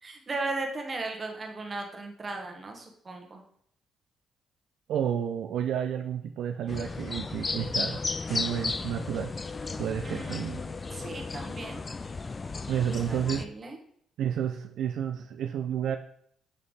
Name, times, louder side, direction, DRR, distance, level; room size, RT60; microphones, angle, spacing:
voice 1, 0.0-3.4 10.0-11.8 13.1-13.8, right 2 dB, 35° right, 2 dB, 1.2 m, -37 dB
voice 2, 4.9-8.0 8.3-9.3 9.8-10.6 12.7-13.5 14.2-16.0, right 9 dB, 80° right, 6 dB, 0.3 m, -30 dB
sound 1, 6.7-13.4, left 3 dB, 30° left, 0.3 m, -34 dB
7.5 x 3.3 x 3.9 m, 0.66 s
cardioid pair, 90°, 0 cm